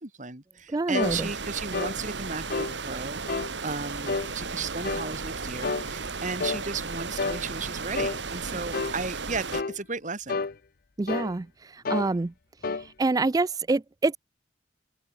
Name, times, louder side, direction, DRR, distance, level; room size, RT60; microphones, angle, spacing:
voice 1, 0.0-3.2 3.6-10.4, right 4 dB, 45° right, 3.0 m, -35 dB
voice 2, 0.7-1.3 11.0-11.5 11.7-12.3 13.0-14.2, right 3 dB, 20° right, 0.4 m, -26 dB
sound 1, 0.9-1.2 1.7-2.0 2.5-2.8 3.3-3.5 4.1-4.3 4.8-5.1 5.6-5.9 6.4-6.6 7.2-7.4 8.0-8.2 8.7-9.0 9.5-9.8 10.3-10.5 11.1-11.3 11.9-12.1 12.6-12.9, left 4 dB, 55° left, 0.7 m, -29 dB
sound 2, 1.0-9.6, right 4 dB, 85° right, 2.0 m, -35 dB
open air
head